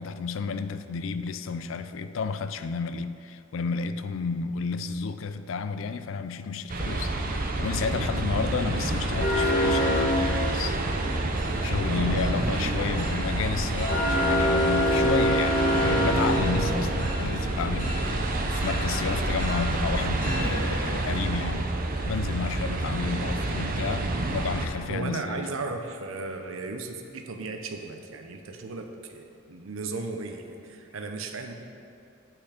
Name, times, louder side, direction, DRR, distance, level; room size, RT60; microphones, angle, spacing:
voice 1, 0.0-7.1 7.6-10.8 11.6-21.7 22.1-25.5, left 5 dB, 70° left, 11 dB, 0.4 m, -31 dB
sound 1, 6.7-24.7, right 2 dB, 45° right, 0.7 m, -28 dB
sound 2, 8.8-20.4, equal, 45° left, 1.9 m, -28 dB
voice 2, 11.9-12.4 24.9-31.5, right 3 dB, 80° right, 5 dB, 0.8 m, -36 dB
8.7 x 5.9 x 5.0 m, 2.6 s
head